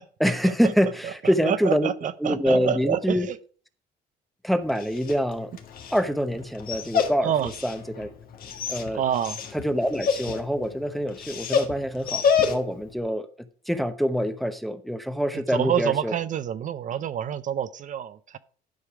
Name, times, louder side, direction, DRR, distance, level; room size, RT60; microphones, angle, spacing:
voice 1, 0.2-1.9 2.2-3.3 4.4-5.5 5.9-7.3 7.6-8.1 8.7-9.0 9.5-13.3 13.7-16.1, equal, ahead, 0.8 m, -25 dB
voice 2, 1.0-3.4 7.2-7.5 8.9-9.4 15.3-18.4, right 9 dB, 50° right, 0.5 m, -28 dB
Dog, 4.6-12.9, left 6 dB, 60° left, 1.6 m, -29 dB
11.5 x 5.2 x 4.8 m
cardioid pair, 110°, 17 cm